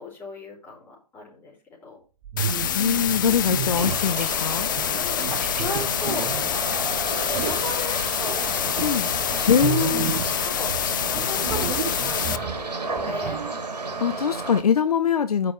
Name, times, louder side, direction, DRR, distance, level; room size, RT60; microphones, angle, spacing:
voice 1, 0.0-1.5 1.8-2.0 4.9-9.4 10.5-10.7 11.1-13.5, left 3 dB, 10° left, 4.2 m, -36 dB
sound 1, 2.2-4.2 4.8-6.8 7.3-7.7 8.2-10.4 10.7-13.5, right 9 dB, 30° right, 0.8 m, -32 dB
sound 2, 2.4-12.4, left 11 dB, 30° left, 0.4 m, -27 dB
voice 2, 2.7-4.7 8.8-9.1 9.5-10.2 14.0-15.5, left 7 dB, 60° left, 0.8 m, -23 dB
sound 3, 3.8-14.6, right 3 dB, 70° right, 2.3 m, -32 dB
7.7 x 5.5 x 6.9 m
figure-of-eight pair, 130°, 21 cm